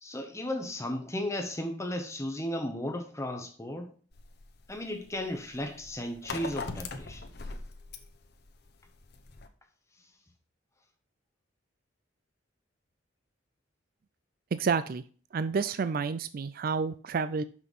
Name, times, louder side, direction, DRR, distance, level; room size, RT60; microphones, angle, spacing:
voice 1, 0.0-3.9 4.7-7.2, left 1 dB, 15° left, 5 dB, 0.9 m, -35 dB
sound 1, 4.1-9.5, left 3 dB, 55° left, 0.9 m, -41 dB
voice 2, 14.5-15.0 15.3-17.4, right 5 dB, 50° right, 13 dB, 0.4 m, -29 dB
6.1 x 5.8 x 5.4 m, 0.42 s
head